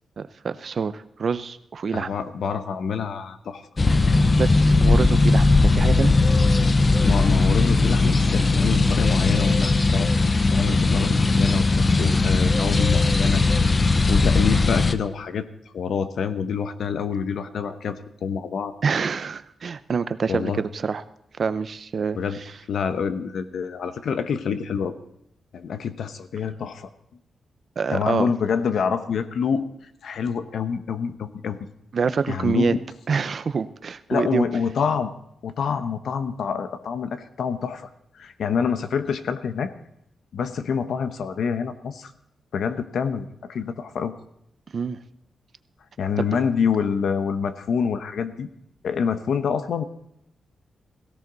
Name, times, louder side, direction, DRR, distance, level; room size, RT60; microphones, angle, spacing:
voice 1, 0.2-2.1 4.4-6.1 18.8-21.0 21.4-22.6 27.8-28.3 31.9-32.8 33.1-34.5 44.7-45.0 46.2-46.3, right 5 dB, 45° right, 13 dB, 0.6 m, -26 dB
voice 2, 1.9-3.6 7.0-10.1 10.5-13.8 14.1-15.5 15.7-18.7 20.3-20.6 22.1-22.4 22.7-24.9 25.5-26.9 27.9-29.6 30.0-31.6 32.3-32.8 34.1-35.1 35.4-37.9 38.1-39.7 40.3-42.1 42.5-44.2 46.0-48.5 48.8-49.8, left 6 dB, 70° left, 10 dB, 1.0 m, -27 dB
sound 1, 3.8-14.9, left 3 dB, 25° left, 0.7 m, -18 dB
17.5 x 16.5 x 4.0 m, 0.76 s
wide cardioid pair, 150°, 0 cm